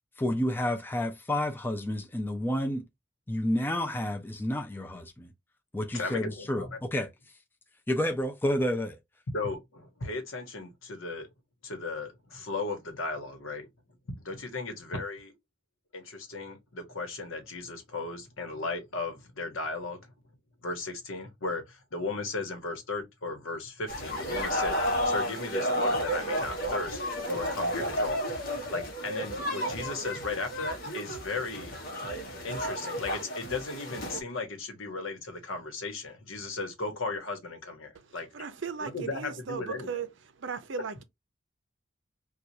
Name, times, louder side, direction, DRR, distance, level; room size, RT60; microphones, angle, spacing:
voice 1, 0.2-2.8 3.3-5.3 5.7-7.1 7.9-9.0, left 1 dB, 10° left, 0.4 m, -30 dB
voice 2, 5.9-6.8 9.3-11.3 11.6-13.7 14.2-15.3 15.9-20.1 20.6-31.7 32.4-38.3 38.8-40.1, left 3 dB, 80° left, 1.1 m, -36 dB
sound 1, 23.9-34.2, equal, 45° left, 1.1 m, -32 dB
voice 3, 38.3-40.1 40.4-41.0, right 5 dB, 65° right, 0.5 m, -36 dB
4.4 x 2.4 x 2.7 m
head